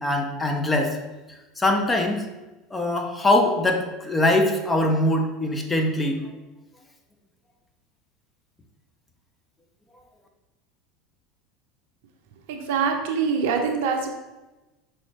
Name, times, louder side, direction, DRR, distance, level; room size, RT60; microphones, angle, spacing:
voice 1, 0.0-0.9 1.6-2.2 2.7-6.2, left 1 dB, 15° left, 3 dB, 0.7 m, -22 dB
voice 2, 12.5-14.1, right 6 dB, 65° right, 3 dB, 0.6 m, -24 dB
5.4 x 3.1 x 3.2 m, 1.1 s
hypercardioid pair, 80°, 0 cm